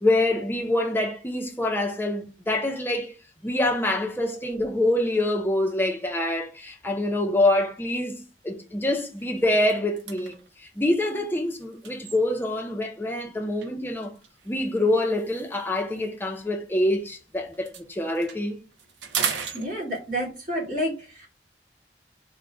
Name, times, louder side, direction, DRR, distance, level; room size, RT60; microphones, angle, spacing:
voice 1, 0.0-3.1 3.4-10.3 10.8-14.1 14.5-18.6, left 1 dB, 10° left, 0.5 m, -25 dB
sound 1, 7.6-7.9 8.3-8.5 8.8-12.7 13.6-17.2 17.5-20.3, right 7 dB, 90° right, 0.5 m, -37 dB
voice 2, 19.5-21.3, equal, 50° right, 1.8 m, -29 dB
3.6 x 2.1 x 3.8 m
head